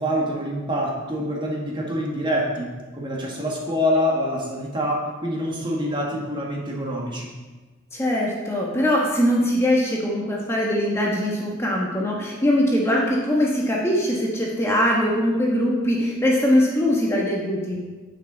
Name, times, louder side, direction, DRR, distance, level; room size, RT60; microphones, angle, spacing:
voice 1, 0.0-7.3, equal, 25° right, -2 dB, 1.5 m, -26 dB
voice 2, 7.9-17.8, equal, 15° left, -3 dB, 1.2 m, -22 dB
9.2 x 7.4 x 3.9 m, 1.3 s
head